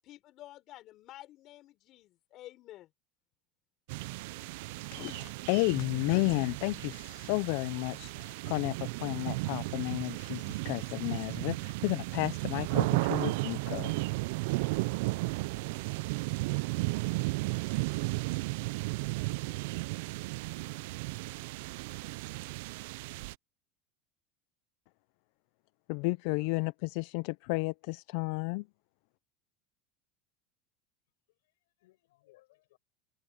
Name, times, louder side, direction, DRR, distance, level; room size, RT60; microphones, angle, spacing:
voice 1, 0.0-2.9, left 15 dB, 45° left, 5.8 m, -51 dB
sound 1, 3.9-23.3, right 23 dB, 75° right, 0.4 m, -34 dB
voice 2, 4.9-13.9 25.9-28.7, left 27 dB, 65° left, 0.4 m, -32 dB
voice 3, 31.3-32.8, left 18 dB, 85° left, 5.9 m, -66 dB
supercardioid pair, 140°, 0 cm